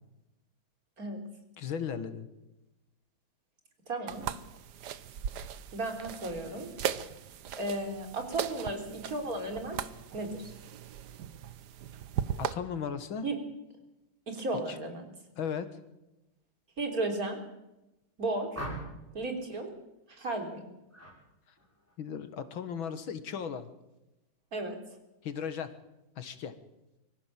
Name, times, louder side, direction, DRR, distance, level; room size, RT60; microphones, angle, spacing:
voice 1, 1.6-2.3 12.4-13.2 14.7-14.8 15.4-15.7 22.0-23.7 25.2-25.7 26.2-26.5, left 7 dB, 90° left, 10 dB, 2.4 m, -36 dB
voice 2, 3.9-4.2 5.7-6.7 7.6-9.8 10.1-10.5 13.2-13.4 14.3-15.0 16.8-17.4 18.2-18.7 19.1-19.7 20.1-20.7 24.5-24.8, right 2 dB, 45° right, 4 dB, 4.1 m, -34 dB
sound 1, 4.1-12.5, right 9 dB, 60° right, 1.4 m, -38 dB
sound 2, 18.5-19.2 20.9-21.2 21.6-21.9, right 1 dB, 5° right, 6.1 m, -40 dB
24.5 x 15.0 x 7.6 m, 0.94 s
omnidirectional pair, 2.1 m